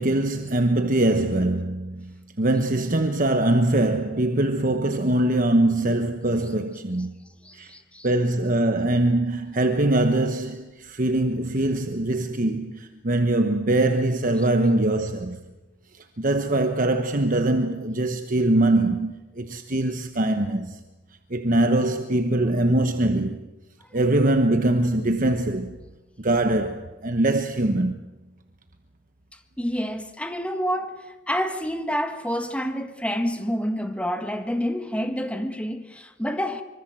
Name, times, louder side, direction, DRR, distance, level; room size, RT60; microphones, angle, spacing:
voice 1, 0.0-7.1 7.5-7.7 8.0-15.4 15.9-20.8 21.3-23.5 23.9-25.8 26.2-28.0, right 1 dB, 40° right, 1.2 m, -22 dB
voice 2, 7.4-8.1 23.8-23.9 29.6-36.6, equal, 5° left, 1.5 m, -28 dB
25.0 x 24.5 x 7.7 m
head